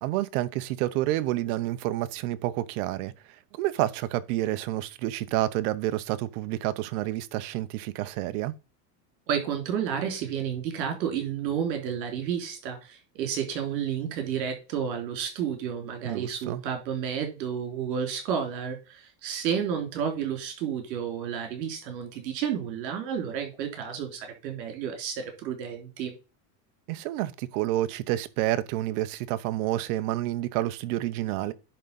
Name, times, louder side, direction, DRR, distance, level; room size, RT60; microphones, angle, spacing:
voice 1, 0.0-3.1 3.5-8.5 16.0-16.6 26.9-31.5, right 15 dB, 60° right, 0.9 m, -29 dB
voice 2, 9.3-26.2, right 8 dB, 75° right, 3.5 m, -31 dB
10.0 x 3.8 x 5.4 m
supercardioid pair, 140°, 50 cm